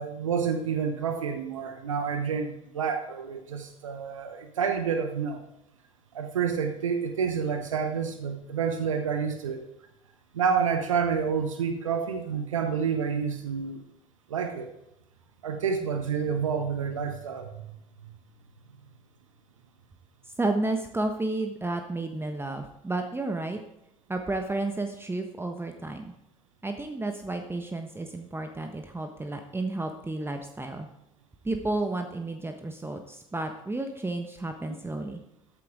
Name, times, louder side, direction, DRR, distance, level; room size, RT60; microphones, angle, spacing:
voice 1, 0.0-5.4 6.1-9.6 10.3-13.8 14.3-14.7 15.4-17.4, right 6 dB, 75° right, 7 dB, 1.1 m, -29 dB
voice 2, 20.4-23.6 24.1-26.1 26.6-30.9 31.4-35.2, right 2 dB, 15° right, 5 dB, 1.4 m, -32 dB
14.0 x 12.0 x 3.7 m, 0.84 s
figure-of-eight pair, 55°, 17 cm